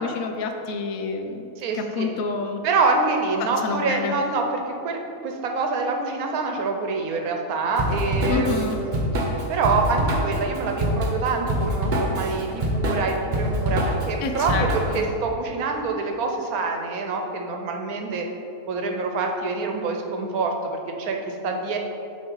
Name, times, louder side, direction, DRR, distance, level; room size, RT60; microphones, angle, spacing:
voice 1, 0.0-2.6 3.4-4.1 8.3-8.8 14.2-15.0, left 4 dB, 75° left, 4 dB, 1.0 m, -28 dB
voice 2, 1.6-2.2 2.6-9.1 9.5-18.3 18.7-21.8, right 3 dB, 80° right, 3 dB, 1.2 m, -26 dB
Drum kit / Drum, 7.8-15.1, equal, 40° right, 0.9 m, -25 dB
8.7 x 3.2 x 4.5 m, 2.8 s
omnidirectional pair, 1.5 m